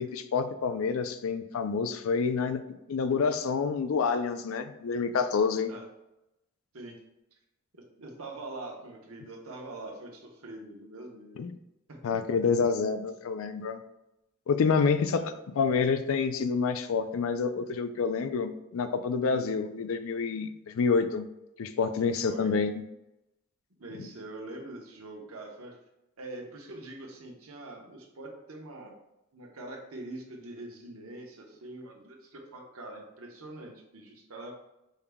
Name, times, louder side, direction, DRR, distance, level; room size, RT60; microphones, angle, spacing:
voice 1, 0.0-2.6 2.9-5.7 11.4-11.5 12.0-13.8 14.5-21.3 21.6-22.7 24.0-24.1, left 5 dB, 80° left, 10 dB, 0.4 m, -28 dB
voice 2, 7.7-11.5 11.9-12.0 15.1-15.3 22.2-22.5 23.8-25.8 26.2-28.9 29.3-34.5, right 2 dB, 90° right, 1 dB, 0.9 m, -43 dB
5.5 x 3.4 x 2.3 m, 0.91 s
head